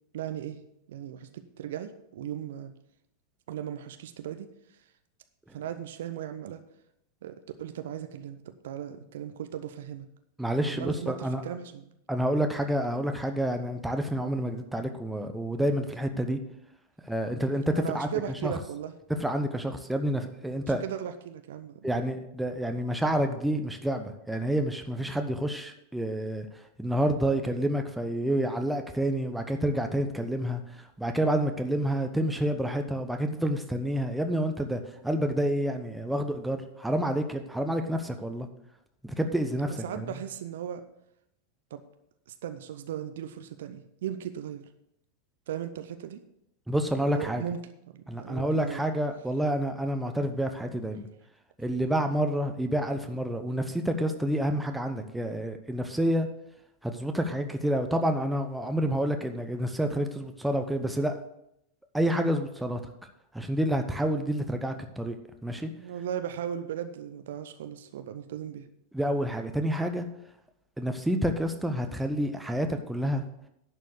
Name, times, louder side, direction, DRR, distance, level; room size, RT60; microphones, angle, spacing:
voice 1, 0.1-2.7 3.5-4.5 5.5-6.6 7.2-10.1 10.6-11.8 17.7-18.9 20.6-21.9 39.7-40.8 41.7-41.8 42.3-44.6 45.5-46.2 47.1-47.6 47.9-48.8 65.8-68.7, right 9 dB, 55° right, 9 dB, 0.7 m, -37 dB
voice 2, 10.4-11.4 12.1-16.4 17.0-18.1 18.4-18.5 19.2-20.8 21.8-26.5 26.8-38.5 39.0-40.1 46.7-47.4 48.1-51.1 51.6-56.3 56.8-61.2 61.9-62.8 63.3-65.2 65.4-65.7 68.9-70.0 70.8-73.2, right 1 dB, 5° right, 5 dB, 0.9 m, -28 dB
11.0 x 4.6 x 8.0 m, 0.79 s
figure-of-eight pair, 90°, 0 cm